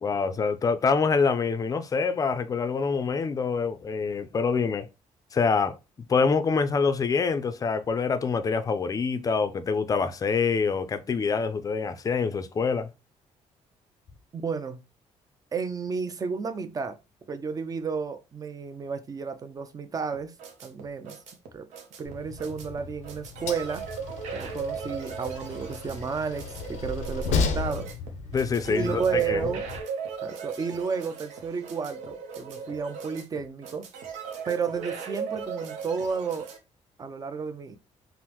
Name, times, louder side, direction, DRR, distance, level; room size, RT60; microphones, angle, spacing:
voice 1, 0.0-4.9 5.3-5.8 6.1-12.9 28.3-29.4, left 5 dB, 30° left, 0.4 m, -25 dB
voice 2, 14.3-14.8 15.5-17.0 17.3-20.3 20.6-21.2 21.5-21.7 22.0-23.8 24.3-27.9 28.7-29.6 30.2-33.9 34.5-36.5 37.0-37.8, right 5 dB, 30° right, 0.5 m, -32 dB
sound 1, 20.1-36.6, right 6 dB, 90° right, 0.7 m, -38 dB
Train, 22.1-29.8, left 4 dB, 90° left, 0.5 m, -34 dB
3.5 x 2.0 x 2.9 m
cardioid pair, 110°, 12 cm